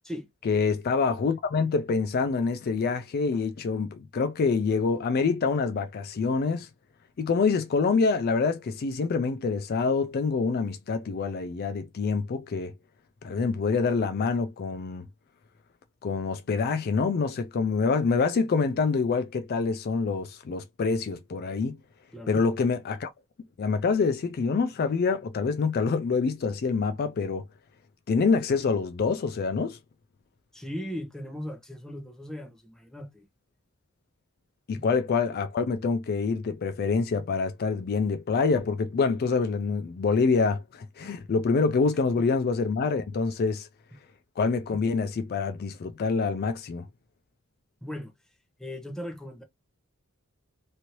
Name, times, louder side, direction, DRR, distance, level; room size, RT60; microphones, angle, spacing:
voice 1, 0.5-6.7 7.2-12.7 13.2-15.1 16.0-21.8 22.3-23.1 23.6-27.5 28.1-29.8 34.7-43.7 44.4-46.9, left 4 dB, 45° left, 0.3 m, -26 dB
voice 2, 30.5-33.2 34.7-34.9 47.8-48.1 48.6-49.4, equal, 5° left, 0.7 m, -38 dB
3.1 x 2.6 x 2.8 m
head